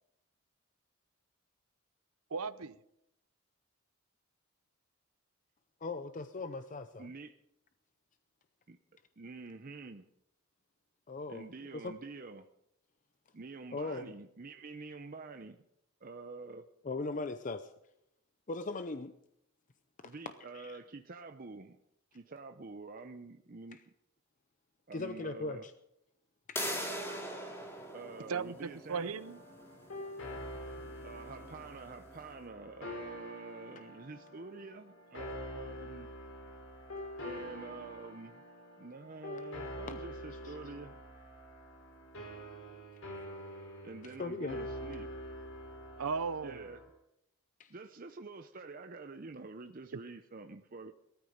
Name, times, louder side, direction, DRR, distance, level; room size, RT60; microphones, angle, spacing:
voice 1, 2.3-2.8 28.3-29.4 46.0-46.7, right 5 dB, 85° right, 15 dB, 0.7 m, -36 dB
voice 2, 5.8-7.1 11.1-11.9 13.7-14.1 16.8-17.7 18.5-19.2 20.0-20.1 20.5-20.8 23.7-23.8 24.9-25.7 26.5-26.7 39.3-39.4 39.9-40.0 40.4-40.5 44.2-44.6 47.6-47.7, left 3 dB, 35° left, 10 dB, 0.6 m, -39 dB
voice 3, 7.0-7.3 8.7-8.8 9.2-10.1 11.3-12.5 13.3-15.6 16.0-16.7 20.0-21.8 22.1-23.8 24.9-25.7 27.9-29.1 31.0-36.1 37.2-38.4 38.8-41.0 43.8-45.1 46.4-46.8 47.7-50.9, right 3 dB, 40° right, 6 dB, 0.7 m, -47 dB
sound 1, 26.6-32.1, equal, 10° left, 2.4 m, -42 dB
sound 2, 28.9-46.9, equal, 65° left, 4.4 m, -46 dB
19.0 x 13.5 x 5.2 m, 0.82 s
head